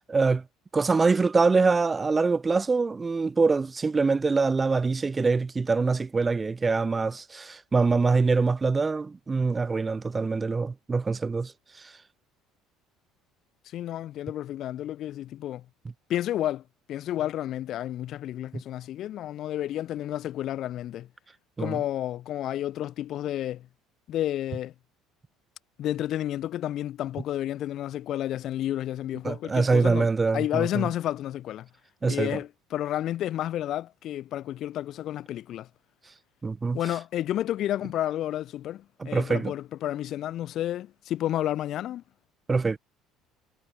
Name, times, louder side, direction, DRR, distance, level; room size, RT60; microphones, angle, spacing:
voice 1, 0.1-0.4 0.7-11.5 11.8-11.9 18.5-18.6 21.6-21.8 29.2-30.9 32.0-32.3 36.4-36.8 39.0-39.5 42.5-42.8, right 4 dB, 20° right, 0.8 m, -24 dB
voice 2, 13.7-15.6 16.1-16.6 16.9-21.1 21.6-23.7 24.1-24.7 25.8-30.1 30.3-31.7 32.1-35.7 36.7-42.0, left 12 dB, 55° left, 7.9 m, -31 dB
cardioid pair, 110°, 0 cm